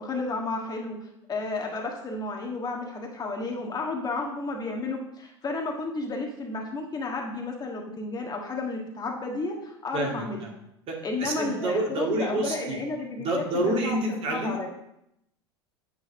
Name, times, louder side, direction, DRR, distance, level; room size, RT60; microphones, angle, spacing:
voice 1, 0.0-10.4 11.0-14.7, left 3 dB, 25° left, 1 dB, 1.5 m, -32 dB
voice 2, 9.9-10.2 10.9-12.8 13.2-14.6, right 1 dB, 40° right, 0 dB, 2.0 m, -28 dB
9.4 x 4.0 x 5.1 m, 0.80 s
hypercardioid pair, 85°, 15 cm